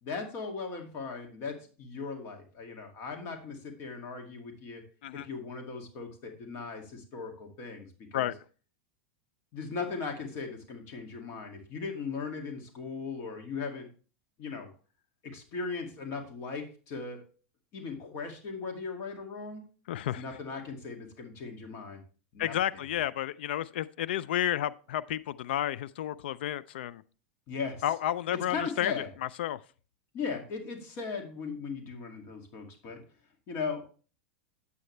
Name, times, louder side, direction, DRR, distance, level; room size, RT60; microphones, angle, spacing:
voice 1, 0.0-4.8 5.1-8.3 9.5-13.9 14.4-14.7 15.2-17.2 17.7-19.6 20.2-22.0 22.3-22.8 27.5-27.8 28.3-29.1 30.1-33.0 33.5-33.8, left 5 dB, 45° left, 2.2 m, -38 dB
voice 2, 19.9-20.2 22.4-27.0 27.8-28.9 29.2-29.6, left 12 dB, 75° left, 0.4 m, -31 dB
8.9 x 8.3 x 3.2 m
hypercardioid pair, 115°, 6 cm